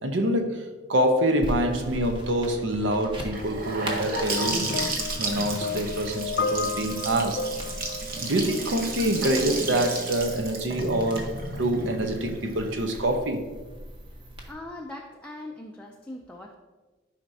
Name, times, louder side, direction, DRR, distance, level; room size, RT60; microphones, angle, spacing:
voice 1, 0.0-4.7 5.2-7.5 8.2-13.4, right 1 dB, 75° right, 5 dB, 0.9 m, -26 dB
sound 1, 1.4-14.5, equal, 25° right, 1.1 m, -40 dB
Gurgling / Sink (filling or washing) / Bathtub (filling or washing), 3.3-13.2, right 3 dB, 50° right, 1.0 m, -33 dB
sound 2, 4.1-9.2 10.1-10.3, left 4 dB, 60° left, 0.5 m, -33 dB
voice 2, 14.5-16.5, left 1 dB, 5° left, 0 dB, 0.4 m, -40 dB
11.0 x 5.1 x 2.8 m, 1.2 s
head